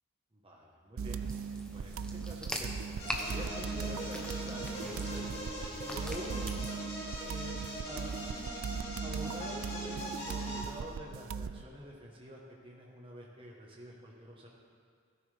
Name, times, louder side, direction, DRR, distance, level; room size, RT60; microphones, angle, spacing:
voice 1, 0.3-1.2 1.7-5.3 5.8-6.5 7.2-8.3 9.0-14.5, equal, 25° right, -2 dB, 1.3 m, -47 dB
sound 1, 1.0-11.6, right 6 dB, 85° right, 0.4 m, -39 dB
sound 2, 1.2-6.6, left 1 dB, 5° left, 0.8 m, -43 dB
sound 3, 3.0-10.6, equal, 30° left, 3.8 m, -41 dB
16.5 x 9.9 x 3.5 m, 2.1 s
head